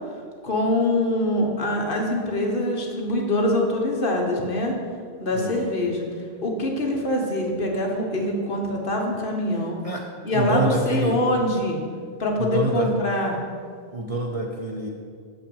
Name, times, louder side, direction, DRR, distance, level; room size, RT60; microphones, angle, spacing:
voice 1, 0.4-4.7 5.2-6.1 6.4-9.8 10.2-11.8 12.2-13.3, left 1 dB, 50° left, 0 dB, 1.3 m, -24 dB
voice 2, 5.3-5.7 9.8-10.1 10.3-11.2 12.4-13.0 13.9-14.9, right 2 dB, 40° right, 0 dB, 0.6 m, -26 dB
6.6 x 5.7 x 6.9 m, 2.1 s
omnidirectional pair, 1.3 m